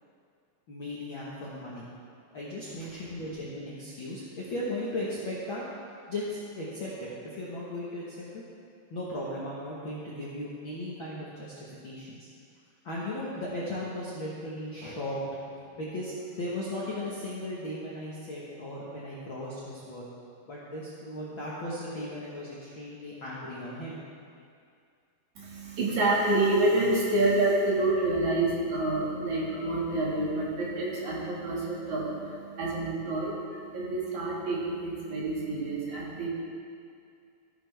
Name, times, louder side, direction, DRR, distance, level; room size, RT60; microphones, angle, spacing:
voice 1, 0.7-1.9 2.3-5.7 6.1-8.4 8.9-12.3 12.8-20.1 20.5-24.1, left 1 dB, 50° left, -7 dB, 1.5 m, -37 dB
voice 2, 25.4-36.3, right 2 dB, 60° right, -6 dB, 3.4 m, -28 dB
14.5 x 10.5 x 3.5 m, 2.3 s
omnidirectional pair, 3.9 m